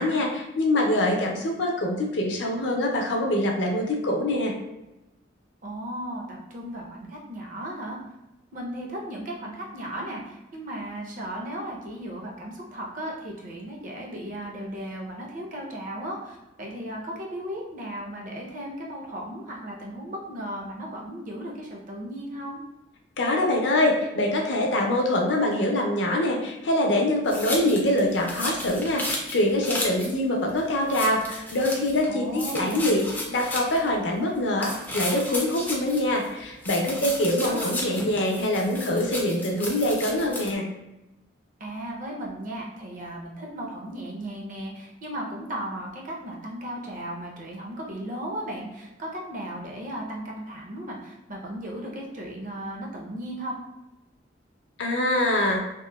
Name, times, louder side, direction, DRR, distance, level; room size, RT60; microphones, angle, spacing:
voice 1, 0.0-4.5 23.2-40.6 54.8-55.6, left 1 dB, 65° left, 0 dB, 0.5 m, -24 dB
voice 2, 5.6-8.0 8.5-22.6 32.1-33.0 36.9-37.9 41.6-53.5, right 1 dB, 45° right, -1 dB, 0.5 m, -36 dB
sound 1, 27.3-30.1 30.5-30.6 30.9-32.1 32.3-33.9 34.6-36.3 36.6-40.5, left 1 dB, 10° left, 0.3 m, -34 dB
2.9 x 2.0 x 2.2 m, 0.97 s
head